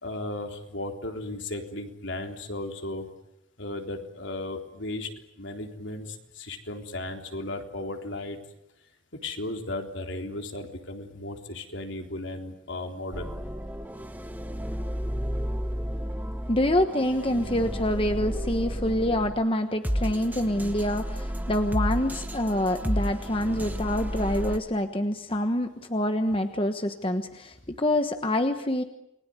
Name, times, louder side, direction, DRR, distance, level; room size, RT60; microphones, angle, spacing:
voice 1, 0.0-3.1 3.6-5.1 5.4-8.4 9.2-13.3, left 2 dB, 65° left, 3 dB, 3.7 m, -35 dB
sound 1, 13.1-19.4 19.8-24.6, equal, 10° right, 1.4 m, -32 dB
voice 2, 16.5-28.8, left 1 dB, 25° left, 7 dB, 1.2 m, -26 dB
29.5 x 21.0 x 9.7 m, 0.85 s
head